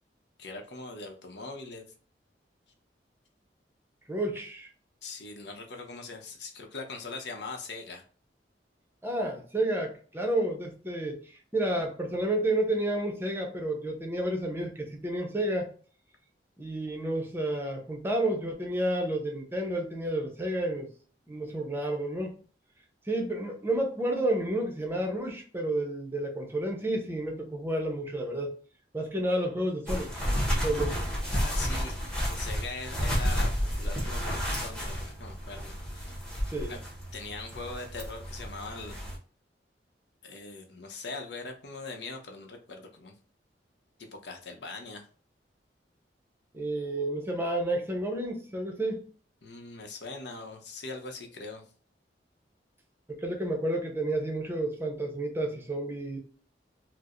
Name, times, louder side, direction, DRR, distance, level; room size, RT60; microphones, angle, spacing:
voice 1, 0.4-1.9 5.0-8.0 31.3-31.9 32.3-33.5 33.8-36.1 36.7-36.8 37.1-39.0 40.2-43.1 44.2-45.1 49.4-51.6, left 3 dB, 70° left, 0.8 m, -41 dB
voice 2, 4.1-4.7 9.0-15.7 16.6-20.9 21.3-22.4 23.1-28.5 28.9-30.1 30.5-31.1 36.5-36.8 46.5-49.1 53.1-56.2, right 1 dB, 15° right, 0.7 m, -30 dB
sound 1, 29.9-39.2, equal, 5° left, 1.0 m, -31 dB
4.5 x 2.1 x 2.5 m
head